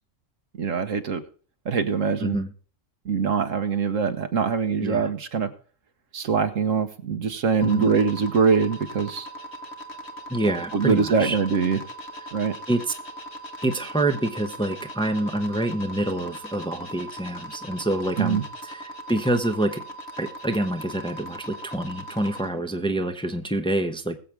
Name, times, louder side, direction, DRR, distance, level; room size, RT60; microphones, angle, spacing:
voice 1, 0.6-1.2 1.6-2.4 3.0-5.5 6.1-9.3 10.7-11.8 12.3-12.5 18.2-18.4, right 5 dB, 75° right, 9 dB, 1.6 m, -23 dB
voice 2, 2.2-2.5 4.8-5.1 7.6-7.9 10.3-11.4 12.7-12.9 13.6-19.8 20.2-24.2, right 1 dB, 5° left, 5 dB, 0.9 m, -27 dB
sound 1, 7.6-22.5, right 1 dB, 55° left, 1.8 m, -39 dB
21.0 x 7.6 x 3.5 m, 0.42 s
omnidirectional pair, 1.3 m